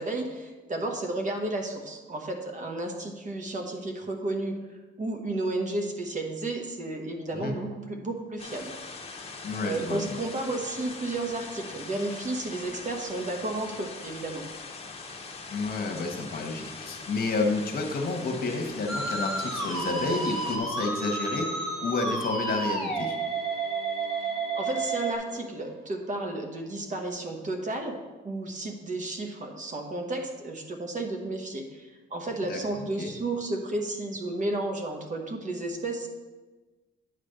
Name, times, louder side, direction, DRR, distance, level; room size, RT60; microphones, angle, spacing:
voice 1, 0.0-4.5 5.0-8.8 9.2-14.4 24.5-28.0 28.2-36.1, right 2 dB, 40° right, 3 dB, 1.2 m, -32 dB
sound 1, 8.4-20.6, left 4 dB, 30° left, 1.2 m, -42 dB
voice 2, 9.4-10.0 15.5-23.1 32.5-33.1, left 3 dB, 50° left, 3 dB, 1.3 m, -30 dB
sound 2, 16.7-26.8, left 1 dB, 55° right, 1.7 m, -50 dB
Musical instrument, 18.9-25.2, right 3 dB, ahead, 1.5 m, -31 dB
9.4 x 3.3 x 6.6 m, 1.2 s
cardioid pair, 90°, 20 cm